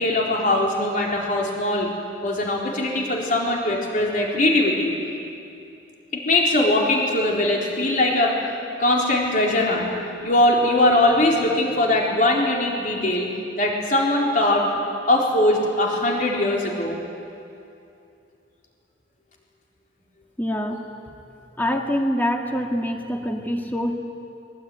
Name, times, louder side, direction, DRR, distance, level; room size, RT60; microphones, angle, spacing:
voice 1, 0.0-1.9 2.2-4.9 6.1-8.3 8.8-9.9 10.2-13.3 13.6-14.7 15.1-17.0, left 1 dB, 45° left, -2 dB, 4.2 m, -21 dB
voice 2, 20.4-20.8 21.6-23.9, equal, 10° left, 2 dB, 2.1 m, -25 dB
23.5 x 22.0 x 9.5 m, 2.6 s
head